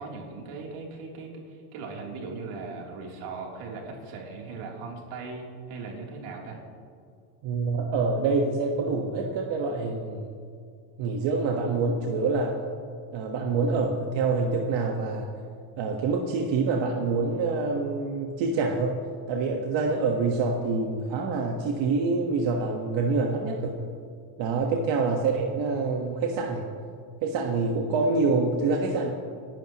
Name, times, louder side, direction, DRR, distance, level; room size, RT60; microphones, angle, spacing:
voice 1, 0.0-6.6, right 4 dB, 85° right, -1 dB, 3.3 m, -39 dB
voice 2, 7.4-10.3 11.0-12.6 13.1-15.3 15.8-19.0 19.3-23.8 24.4-26.6 27.2-29.1, right 4 dB, 60° right, 1 dB, 1.5 m, -26 dB
29.0 x 12.0 x 3.0 m, 2.3 s
cardioid pair, 135°, 50 cm